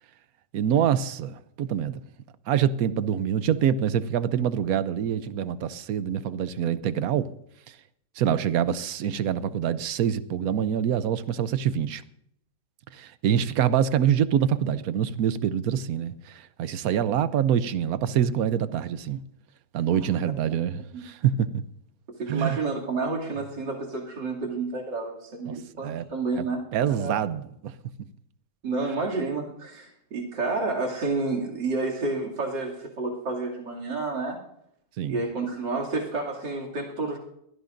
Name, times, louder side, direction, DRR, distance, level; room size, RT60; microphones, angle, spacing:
voice 1, 0.5-2.0 2.5-7.3 8.2-12.0 12.9-19.2 19.7-21.5 22.3-22.6 25.5-25.6 25.8-26.0 26.4-26.5 26.7-27.7 35.0-35.2, right 9 dB, 65° right, 1.1 m, -25 dB
voice 2, 22.1-26.6 27.0-27.2 28.6-34.4 35.1-37.2, right 3 dB, 85° right, 3.3 m, -30 dB
23.0 x 16.5 x 2.6 m
omnidirectional pair, 1.9 m